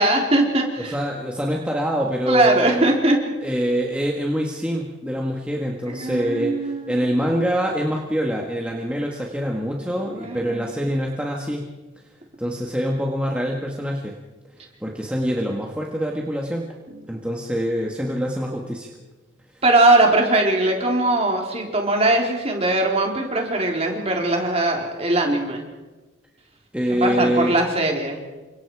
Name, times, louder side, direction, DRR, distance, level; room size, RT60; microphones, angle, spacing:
voice 1, 0.0-0.9 2.3-3.2 5.8-7.1 10.1-10.6 17.1-17.2 19.6-25.6 27.0-28.2, right 2 dB, 30° right, 1 dB, 4.1 m, -20 dB
voice 2, 0.8-2.8 3.4-11.6 12.4-14.1 14.8-16.7 17.1-18.9 26.7-27.5, equal, 5° right, -1 dB, 1.8 m, -25 dB
29.0 x 25.5 x 4.9 m, 1.2 s
head